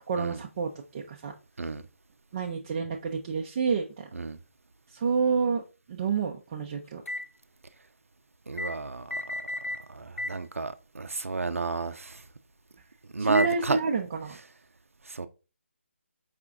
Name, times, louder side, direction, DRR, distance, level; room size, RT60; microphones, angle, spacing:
voice 1, 0.1-1.3 2.3-4.1 4.9-5.6 5.9-7.0 13.2-14.4, right 5 dB, 25° right, 0.4 m, -29 dB
sound 1, 7.1-7.3 8.6-8.8 9.1-9.8 10.2-10.4 11.2-11.3 13.4-13.6, left 1 dB, 85° left, 0.5 m, -33 dB
voice 2, 8.5-9.4 9.9-12.2 13.1-13.8 15.1-15.3, right 3 dB, 90° right, 0.5 m, -31 dB
4.9 x 2.3 x 3.6 m
figure-of-eight pair, 160°, 7 cm